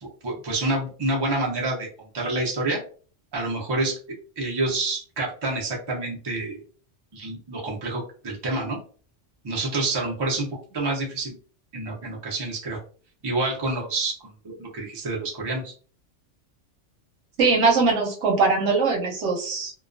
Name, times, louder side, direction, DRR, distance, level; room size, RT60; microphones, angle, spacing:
voice 1, 0.0-2.8 3.3-4.0 4.4-6.6 7.1-8.8 9.4-10.5 10.7-11.4 11.7-12.8 13.2-14.1 14.4-15.7, right 2 dB, 30° right, -2 dB, 0.5 m, -28 dB
voice 2, 17.4-19.7, right 4 dB, 75° right, 0 dB, 1.0 m, -21 dB
2.3 x 2.2 x 2.4 m, 0.42 s
omnidirectional pair, 1.2 m